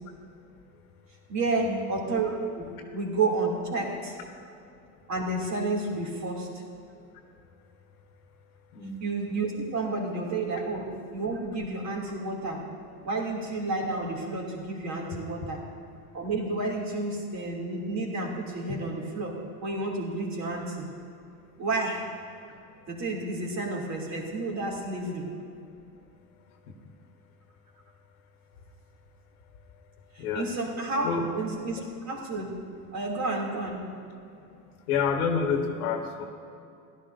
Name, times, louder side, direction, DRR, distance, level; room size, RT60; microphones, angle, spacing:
voice 1, 1.3-4.2 5.1-6.5 9.0-12.7 13.0-15.6 16.1-19.3 19.6-20.9 21.6-22.1 22.9-25.3 30.1-31.1 31.3-31.8 32.1-32.6 32.9-33.8, right 3 dB, 40° right, -1 dB, 2.9 m, -30 dB
voice 2, 30.2-30.5 31.0-31.3 34.2-34.4 34.9-36.2, left 5 dB, 75° left, 4 dB, 1.5 m, -29 dB
16.0 x 11.5 x 2.7 m, 2.5 s
hypercardioid pair, 95°, 45 cm